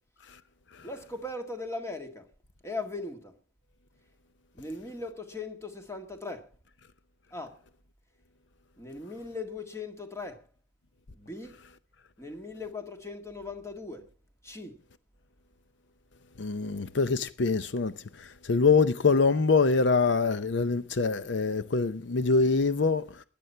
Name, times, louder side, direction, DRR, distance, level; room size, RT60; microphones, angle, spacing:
voice 1, 0.8-2.3 2.6-3.3 4.5-6.5 7.3-7.6 8.8-10.4 11.1-11.6 12.2-14.1 14.4-14.8, left 3 dB, 15° left, 1.9 m, -39 dB
voice 2, 16.4-17.9 18.2-23.0, left 4 dB, 70° left, 0.7 m, -24 dB
16.0 x 10.5 x 5.6 m
head